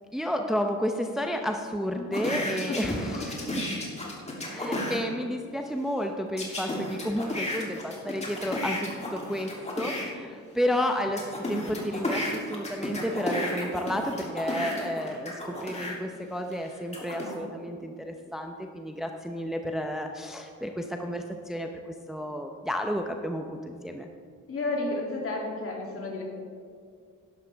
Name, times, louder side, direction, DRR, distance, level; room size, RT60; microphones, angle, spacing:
voice 1, 0.1-3.7 4.5-21.7 22.1-24.1, equal, ahead, 4 dB, 0.7 m, -31 dB
sound 1, 2.1-5.0 6.4-10.0 10.6-15.9 16.5-17.4, left 1 dB, 20° left, 2.8 m, -32 dB
voice 2, 2.7-3.5 4.0-4.1 17.8-17.9 24.5-26.2, left 2 dB, 50° left, -1 dB, 2.8 m, -33 dB
11.5 x 11.5 x 3.5 m, 2.2 s
cardioid pair, 90°, 30 cm